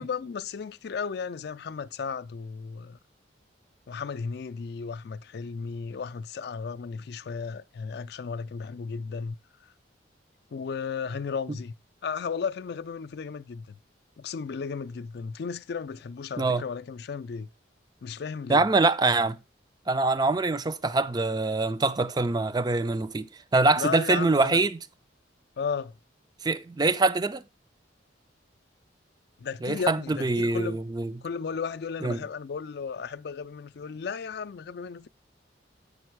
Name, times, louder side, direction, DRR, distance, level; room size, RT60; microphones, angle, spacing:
voice 1, 0.0-3.0 3.9-9.4 10.5-11.7 12.0-13.8 14.2-17.5 18.0-18.7 23.8-24.6 25.6-25.9 29.4-30.8 31.2-35.1, left 5 dB, 55° left, 0.4 m, -34 dB
voice 2, 18.5-19.4 19.9-23.3 23.5-24.8 26.4-27.4 29.6-31.1 32.0-32.2, right 3 dB, 20° right, 0.4 m, -24 dB
8.5 x 5.4 x 4.5 m
head